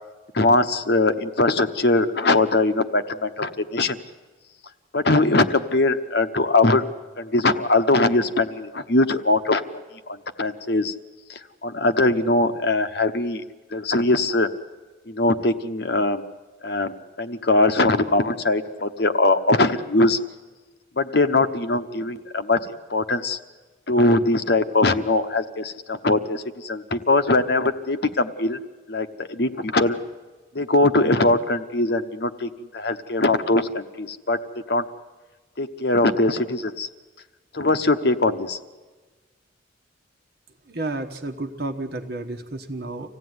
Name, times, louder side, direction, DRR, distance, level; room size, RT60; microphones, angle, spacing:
voice 1, 0.3-4.0 4.9-6.8 7.2-9.6 10.1-10.9 11.3-13.4 13.7-14.5 15.1-16.2 16.6-20.2 21.0-22.6 22.9-23.4 23.9-28.6 28.9-30.0 30.5-34.4 34.7-34.8 35.6-36.9 37.5-38.6, left 2 dB, 55° left, 9 dB, 1.0 m, -21 dB
voice 2, 40.7-43.1, right 2 dB, 55° right, 3 dB, 1.3 m, -31 dB
25.5 x 16.0 x 9.6 m, 1.3 s
head